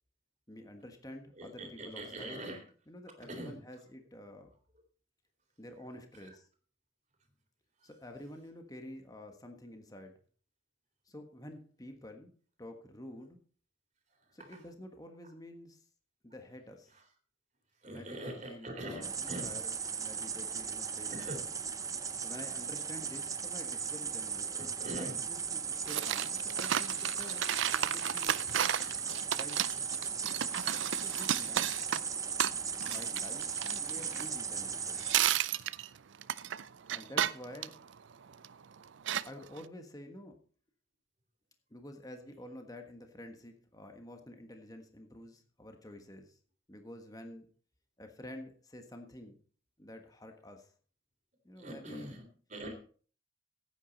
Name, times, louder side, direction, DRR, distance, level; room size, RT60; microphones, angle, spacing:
voice 1, 0.5-2.4 2.9-4.5 5.6-6.5 7.8-10.2 11.0-12.3 12.6-13.4 14.3-15.8 16.2-16.9 17.9-19.6 20.0-21.1 22.2-24.6 24.9-28.5 29.3-29.6 31.0-31.8 32.8-35.0 36.9-37.8 39.2-40.4 41.7-46.4 46.7-47.5 48.0-49.4 49.8-50.7 51.4-52.1, left 1 dB, 20° left, 5 dB, 1.4 m, -49 dB
voice 2, 1.3-2.6 3.3-3.6 6.2-6.3 7.8-7.9 14.2-14.4 16.9-17.0 17.8-19.6 21.1-21.4 24.5-25.2 51.6-52.7, right 1 dB, 35° right, 4 dB, 3.4 m, -43 dB
sound 1, 19.0-35.2, right 6 dB, 15° right, 0.6 m, -37 dB
sound 2, 25.9-34.7 35.0-38.5 39.1-39.6, right 10 dB, 65° right, 0.5 m, -33 dB
15.0 x 9.1 x 4.1 m, 0.41 s
head